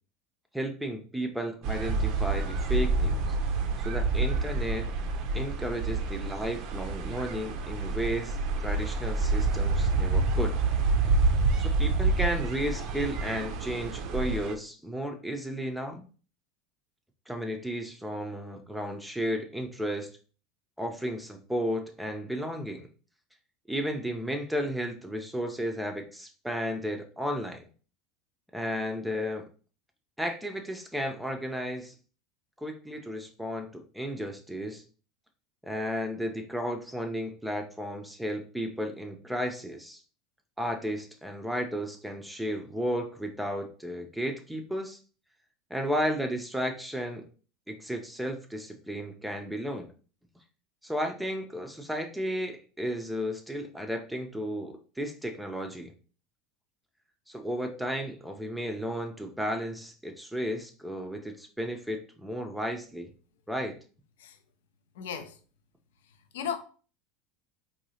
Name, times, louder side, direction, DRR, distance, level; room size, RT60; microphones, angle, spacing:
voice 1, 0.5-3.4 3.8-4.9 5.3-10.6 11.6-16.1 17.3-20.1 20.8-22.9 23.7-27.7 28.5-29.4 30.2-31.9 32.6-34.8 35.6-40.0 40.6-45.0 45.7-47.3 47.7-49.9 50.8-55.9 57.3-63.1 63.5-63.7, equal, 5° right, 0.5 m, -33 dB
sound 1, 1.6-14.6, right 3 dB, 55° right, 0.5 m, -28 dB
voice 2, 65.0-65.3 66.3-66.6, left 8 dB, 70° left, 0.4 m, -34 dB
3.8 x 2.7 x 2.8 m
figure-of-eight pair, 75°, 0 cm